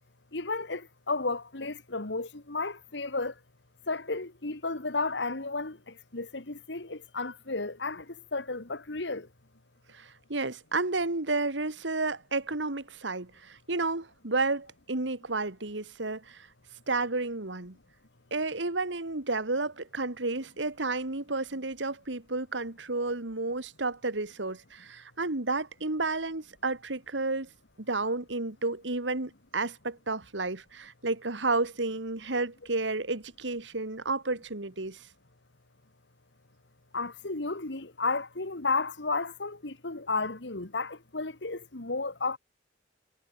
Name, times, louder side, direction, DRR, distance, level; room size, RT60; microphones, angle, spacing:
voice 1, 0.3-3.3 3.9-9.3 36.9-42.4, left 3 dB, 70° left, 2.0 m, -33 dB
voice 2, 9.9-16.5 16.9-17.8 18.3-27.5 27.8-35.1, right 3 dB, 80° right, 2.2 m, -31 dB
head